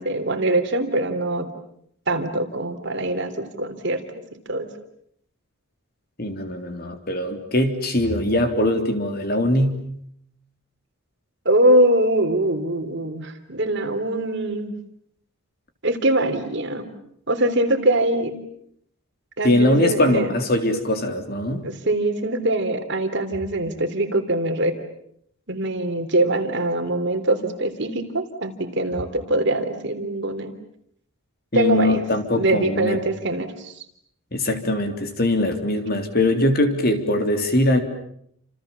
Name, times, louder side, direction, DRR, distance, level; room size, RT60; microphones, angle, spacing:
voice 1, 0.0-1.5 2.1-4.0 4.5-4.7 11.5-14.7 15.8-16.9 17.3-18.3 19.4-20.3 21.6-24.8 25.5-30.5 31.5-32.0 32.4-33.7, right 1 dB, 55° right, 6 dB, 3.4 m, -23 dB
voice 2, 6.2-9.9 19.4-21.7 31.5-33.0 34.3-37.8, left 1 dB, 45° left, 6 dB, 3.5 m, -21 dB
30.0 x 28.0 x 7.2 m, 0.71 s
head